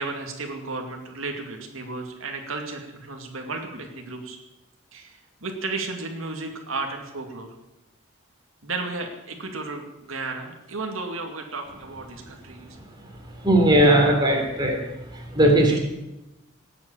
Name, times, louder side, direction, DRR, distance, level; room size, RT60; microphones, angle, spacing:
voice 1, 0.0-4.4 4.9-5.1 5.4-7.5 8.6-12.7 13.7-13.8 15.3-15.8, right 3 dB, 90° right, 2 dB, 2.5 m, -33 dB
voice 2, 13.4-14.8 15.1-15.8, right 1 dB, 20° right, 0 dB, 3.6 m, -18 dB
18.5 x 8.6 x 8.9 m, 0.98 s
head